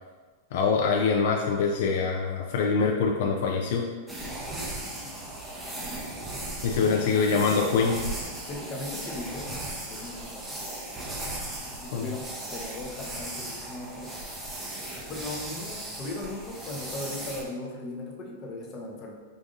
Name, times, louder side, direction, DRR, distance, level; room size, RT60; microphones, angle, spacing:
voice 1, 0.5-3.8 6.6-7.9 11.9-12.1, left 5 dB, 65° left, 0 dB, 0.4 m, -24 dB
sound 1, 4.1-17.4, right 1 dB, 10° right, 0.6 m, -37 dB
voice 2, 5.9-6.3 6.6-7.6 8.5-10.6 11.8-14.3 15.1-19.2, left 2 dB, 30° left, -1 dB, 0.7 m, -38 dB
sound 2, 6.6-7.1 8.0-8.4 9.2-9.7 10.4-10.6 10.9-11.1 11.7-11.9 13.1-13.3, right 3 dB, 90° right, 0.4 m, -41 dB
5.0 x 2.6 x 2.5 m, 1.4 s
supercardioid pair, 140°, 0 cm